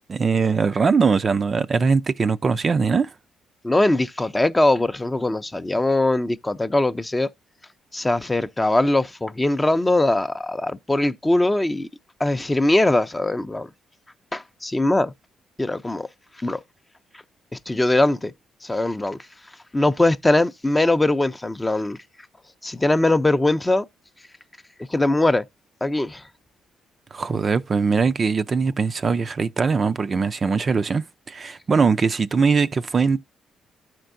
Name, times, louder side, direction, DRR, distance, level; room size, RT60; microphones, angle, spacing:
voice 1, 0.1-3.1 27.1-33.2, right 5 dB, 40° right, 0.4 m, -21 dB
voice 2, 3.6-7.3 7.9-11.9 12.2-13.7 14.3-15.1 15.6-16.1 16.4-16.6 17.7-18.3 18.6-19.2 19.7-22.0 22.6-23.8 24.9-25.4 25.8-26.2, left 2 dB, 15° left, 0.5 m, -21 dB
12.5 x 4.5 x 2.5 m
cardioid pair, 90°, 0 cm